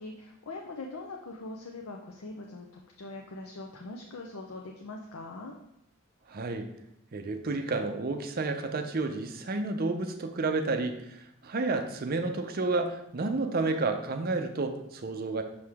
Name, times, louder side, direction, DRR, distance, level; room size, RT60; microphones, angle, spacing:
voice 1, 0.0-5.5, left 2 dB, 90° left, 1 dB, 0.6 m, -42 dB
voice 2, 6.3-6.7 7.1-15.4, right 3 dB, 45° right, 6 dB, 0.6 m, -31 dB
6.1 x 4.8 x 3.5 m, 0.79 s
head